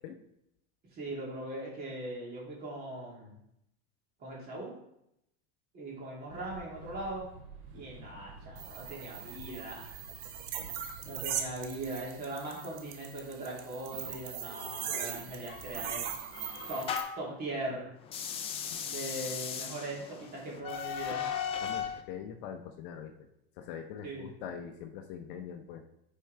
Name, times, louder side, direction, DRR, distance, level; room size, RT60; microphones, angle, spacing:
voice 1, 0.9-3.4 4.2-4.7 5.7-7.2 7.7-10.0 11.0-16.1 16.7-16.9 17.2-17.9 18.8-21.3 24.0-24.5, right 2 dB, 25° right, -4 dB, 2.8 m, -40 dB
sound 1, 6.3-12.0, right 3 dB, 70° right, 2.5 m, -51 dB
sound 2, 8.6-17.0, right 8 dB, 85° right, 1.2 m, -40 dB
sound 3, 15.5-17.3 18.0-22.0, left 8 dB, 20° left, 0.4 m, -37 dB
voice 2, 21.6-23.1 23.6-25.8, left 8 dB, 50° left, 6 dB, 0.8 m, -43 dB
9.9 x 4.6 x 3.3 m, 0.79 s
supercardioid pair, 160°, 34 cm